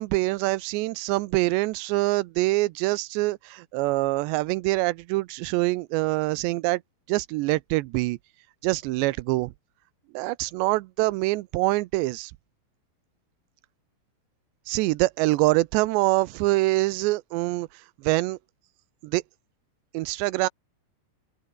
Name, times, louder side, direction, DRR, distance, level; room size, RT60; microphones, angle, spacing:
voice 1, 0.0-6.8 7.1-8.2 8.6-9.5 10.1-12.3 14.7-17.7 18.0-18.4 19.0-19.2 19.9-20.5, right 21 dB, 90° right, 2.9 m, -25 dB
open air
omnidirectional pair, 4.9 m